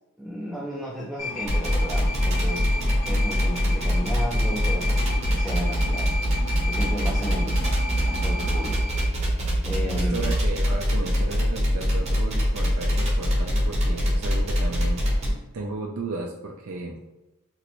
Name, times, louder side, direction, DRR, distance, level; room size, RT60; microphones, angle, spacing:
voice 1, 0.2-6.1 6.6-7.6 8.0-8.8 9.6-10.3, equal, ahead, -5 dB, 0.3 m, -34 dB
sound 1, 1.2-9.1, left 2 dB, 60° left, 1.3 m, -33 dB
sound 2, 1.4-15.3, equal, 30° right, 0.8 m, -23 dB
voice 2, 9.8-17.0, right 2 dB, 70° right, -1 dB, 0.4 m, -34 dB
3.1 x 2.5 x 2.9 m, 1.0 s
head